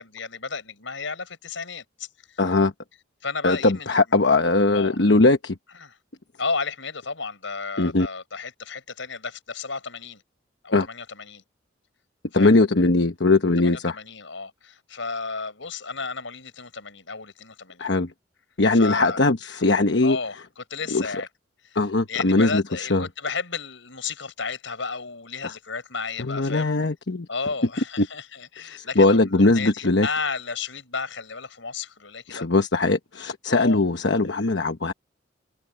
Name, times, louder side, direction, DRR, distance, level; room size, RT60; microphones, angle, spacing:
voice 1, 0.0-2.4 3.2-4.0 4.7-5.0 5.8-6.0 6.4-10.2 10.6-11.4 12.3-12.6 13.6-17.9 18.7-19.2 20.0-21.3 21.6-21.8 22.1-26.7 27.3-29.2 29.5-32.5 33.5-33.8, left 4 dB, 85° left, 5.1 m, -33 dB
voice 2, 2.4-2.7 3.4-5.6 7.8-8.1 10.7-10.9 12.3-14.0 17.8-18.1 18.6-20.2 20.9-21.0 21.7-23.1 26.2-27.3 28.0-28.1 28.6-30.1 32.3-34.9, left 2 dB, 65° left, 1.1 m, -20 dB
head